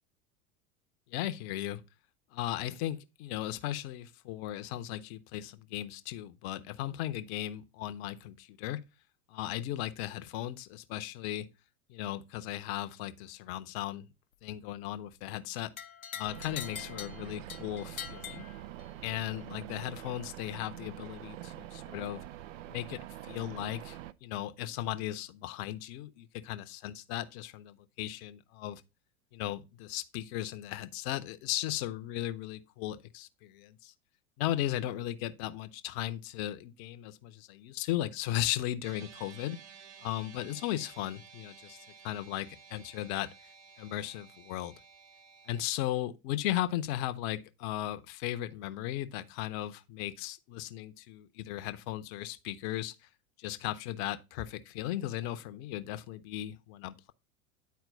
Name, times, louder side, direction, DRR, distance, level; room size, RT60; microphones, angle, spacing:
voice 1, 1.1-1.8 2.3-8.8 9.3-11.5 11.9-14.1 14.4-15.7 16.2-18.5 19.0-22.2 22.7-28.8 29.3-33.9 34.4-39.6 40.0-41.8 42.0-43.3 43.8-44.8 45.5-52.9 53.4-57.1, left 13 dB, 50° left, 0.8 m, -36 dB
sound 1, 15.8-19.1, left 9 dB, 90° left, 0.7 m, -44 dB
sound 2, 16.2-24.1, right 13 dB, 60° right, 0.6 m, -45 dB
sound 3, 38.8-45.6, right 7 dB, 40° right, 1.2 m, -54 dB
9.4 x 4.5 x 3.9 m
figure-of-eight pair, 80°, 42 cm